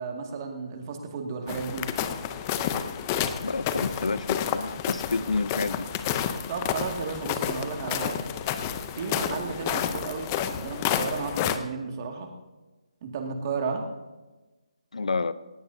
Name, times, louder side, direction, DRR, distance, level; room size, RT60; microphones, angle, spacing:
voice 1, 0.0-1.9 6.5-8.2 8.9-12.3 13.0-13.8, right 5 dB, 30° right, 2 dB, 2.1 m, -33 dB
sound 1, 1.5-11.6, left 9 dB, 20° left, 0.6 m, -30 dB
voice 2, 3.4-5.9 14.9-15.3, left 3 dB, 85° left, 15 dB, 0.7 m, -29 dB
19.0 x 17.0 x 2.7 m, 1.2 s
hypercardioid pair, 165°, 4 cm